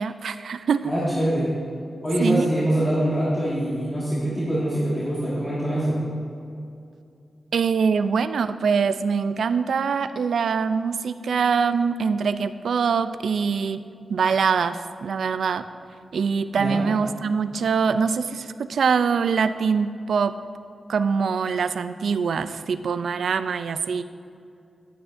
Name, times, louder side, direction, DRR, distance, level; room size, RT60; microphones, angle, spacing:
voice 1, 0.0-0.9 2.2-2.5 7.5-13.8 14.1-15.6 16.1-20.3 20.9-24.0, right 6 dB, 90° right, 12 dB, 0.3 m, -23 dB
voice 2, 0.8-1.5 2.0-6.0 16.6-16.8, right 1 dB, 20° left, -9 dB, 1.8 m, -24 dB
11.0 x 9.8 x 2.6 m, 2.5 s
wide cardioid pair, 150°, 0 cm